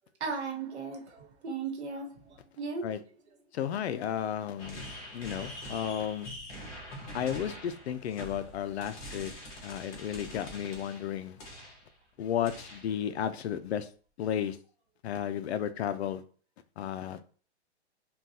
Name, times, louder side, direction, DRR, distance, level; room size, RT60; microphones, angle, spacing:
voice 1, 0.2-2.1 2.6-2.8, right 4 dB, 75° right, 1.1 m, -36 dB
voice 2, 3.5-4.8 5.1-6.3 7.1-9.3 9.6-11.4 12.2-13.9 14.2-14.6 15.0-16.2 16.8-17.2, left 9 dB, 70° left, 0.5 m, -33 dB
sound 1, 4.6-11.9 12.4-13.0, equal, 35° left, 1.3 m, -44 dB
3.7 x 2.4 x 2.7 m
hypercardioid pair, 170°, 34 cm